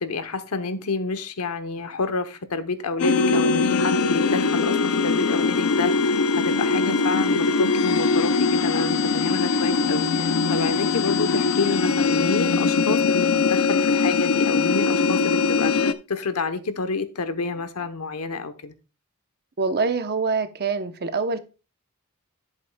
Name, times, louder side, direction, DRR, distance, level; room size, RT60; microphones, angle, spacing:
voice 1, 0.0-6.2 6.4-15.7 16.1-18.7, left 4 dB, 85° left, 0.9 m, -29 dB
sound 1, 3.0-15.9, left 4 dB, 65° left, 0.5 m, -21 dB
voice 2, 19.6-21.4, right 4 dB, 45° right, 0.8 m, -25 dB
10.5 x 8.2 x 2.3 m
head